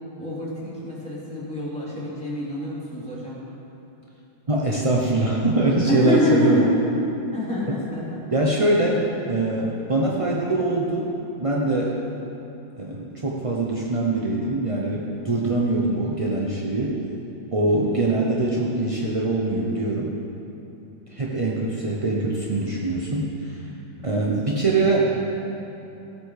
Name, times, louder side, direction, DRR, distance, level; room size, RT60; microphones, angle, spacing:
voice 1, 0.2-3.4 5.8-6.7 7.3-8.2 17.6-18.0 24.0-24.3, left 1 dB, 5° left, -9 dB, 3.1 m, -26 dB
voice 2, 4.5-6.6 8.3-11.1 11.4-12.0 12.8-17.0 17.5-20.1 21.1-23.5 24.0-25.2, right 2 dB, 40° right, -3 dB, 0.5 m, -23 dB
16.0 x 8.3 x 4.9 m, 2.9 s
omnidirectional pair, 2.1 m